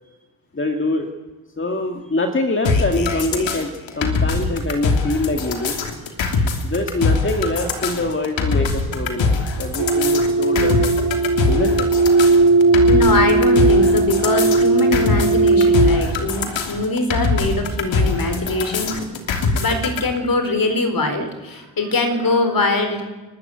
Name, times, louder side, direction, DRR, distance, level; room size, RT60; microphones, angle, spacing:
voice 1, 0.5-1.1 1.6-3.7 4.0-5.8 6.6-10.8 11.5-11.9, left 2 dB, 25° left, 4 dB, 2.2 m, -24 dB
sound 1, 2.6-20.0, left 4 dB, 70° left, 3.0 m, -22 dB
sound 2, 9.8-16.1, right 3 dB, 65° right, 3.9 m, -17 dB
voice 2, 12.9-18.9 19.6-23.1, left 2 dB, 45° left, 7 dB, 4.5 m, -22 dB
28.5 x 12.5 x 9.4 m, 1.2 s
cardioid pair, 70°, 47 cm